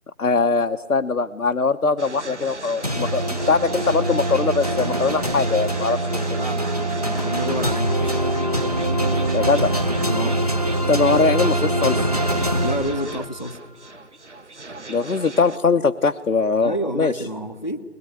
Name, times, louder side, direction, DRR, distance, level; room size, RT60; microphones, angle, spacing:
voice 1, 0.2-6.4 9.3-9.7 10.9-12.1 14.9-17.1, left 4 dB, 65° left, 6 dB, 1.0 m, -21 dB
sound 1, 2.0-15.6, right 3 dB, 50° right, 1.2 m, -38 dB
sound 2, 2.8-13.4, right 1 dB, 25° right, 1.1 m, -23 dB
voice 2, 6.3-8.2 10.1-10.4 12.6-13.6 16.6-17.8, right 1 dB, 30° left, 8 dB, 0.9 m, -29 dB
21.5 x 21.5 x 9.9 m, 1.4 s
figure-of-eight pair, 170°, 46 cm